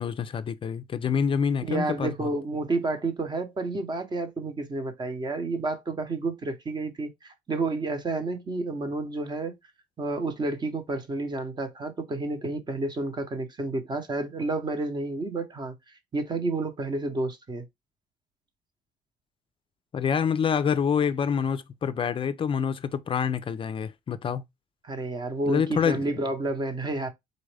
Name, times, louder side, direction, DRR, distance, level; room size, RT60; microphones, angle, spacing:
voice 1, 0.0-2.3 19.9-24.4 25.5-26.0, left 7 dB, 30° left, 0.4 m, -27 dB
voice 2, 1.6-9.5 10.0-15.7 16.1-17.6 24.8-27.1, right 2 dB, 25° right, 0.8 m, -30 dB
3.9 x 2.5 x 3.2 m
cardioid pair, 110°, 17 cm